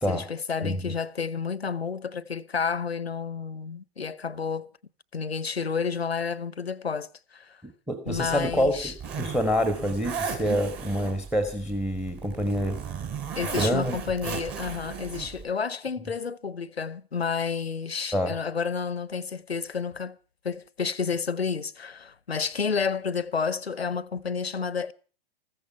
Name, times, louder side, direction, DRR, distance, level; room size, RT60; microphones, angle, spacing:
voice 1, 0.1-4.7 5.1-7.6 8.1-8.9 13.4-20.2 20.4-24.9, left 5 dB, 90° left, 0.9 m, -30 dB
voice 2, 0.6-0.9 7.6-12.8 13.5-14.0 18.1-18.4, equal, 5° right, 1.3 m, -27 dB
Zipper (clothing), 8.1-15.4, right 6 dB, 30° right, 3.7 m, -36 dB
15.0 x 14.5 x 5.7 m
figure-of-eight pair, 105°, 30 cm